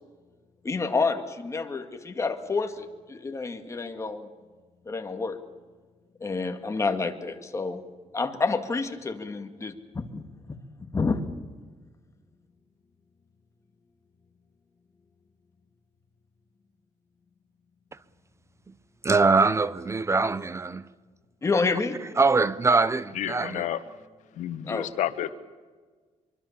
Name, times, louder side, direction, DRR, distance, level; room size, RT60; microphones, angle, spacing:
voice 1, 0.6-4.3 4.9-5.4 6.2-7.8 8.1-10.2 10.8-11.2 21.4-22.0 24.7-24.9, left 4 dB, 25° left, 2.1 m, -29 dB
voice 2, 19.0-20.8 22.2-23.7, right 4 dB, 25° right, 0.7 m, -23 dB
voice 3, 23.1-23.8 24.3-25.3, left 12 dB, 90° left, 1.3 m, -30 dB
24.5 x 23.5 x 7.3 m
cardioid pair, 120°, 12 cm